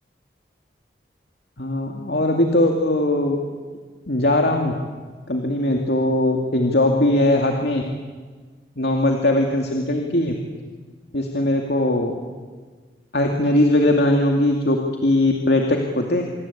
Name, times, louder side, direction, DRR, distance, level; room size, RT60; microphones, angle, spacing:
voice 1, 1.6-3.4 4.1-4.7 5.3-7.8 8.8-10.3 11.1-12.1 13.1-16.2, left 1 dB, 65° left, 2 dB, 2.5 m, -20 dB
27.0 x 23.5 x 8.7 m, 1.5 s
head